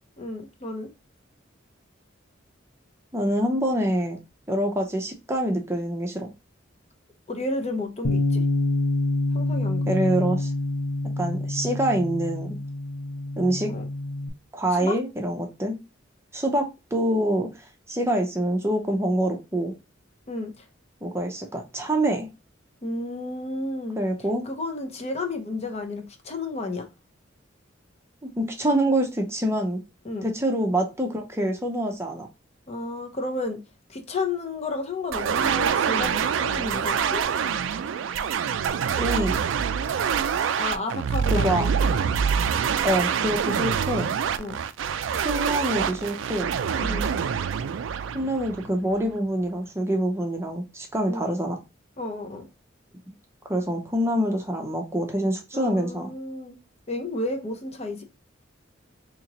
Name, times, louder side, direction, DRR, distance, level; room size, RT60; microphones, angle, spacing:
voice 1, 0.2-0.9 7.3-8.4 9.3-9.8 13.7-13.8 14.7-14.9 20.3-20.7 22.8-24.0 24.4-26.9 30.0-30.3 32.7-33.6 33.9-37.2 40.6-41.9 44.4-44.6 46.8-47.1 51.1-51.3 52.0-52.5 55.5-56.6 56.9-58.0, left 2 dB, 35° left, 0.7 m, -32 dB
voice 2, 3.1-4.2 4.5-6.3 9.9-10.5 11.2-12.6 13.4-13.7 14.5-15.8 16.3-17.5 17.9-19.7 21.0-22.3 24.0-24.5 28.2-29.8 30.2-32.3 39.0-39.4 41.3-41.7 42.8-44.1 45.2-46.5 48.1-51.6 53.5-56.1, right 1 dB, 15° right, 0.6 m, -25 dB
Bass guitar, 8.0-14.3, left 2 dB, 85° left, 0.6 m, -27 dB
sound 1, 35.1-49.0, right 7 dB, 75° right, 0.3 m, -25 dB
4.1 x 2.9 x 2.9 m
head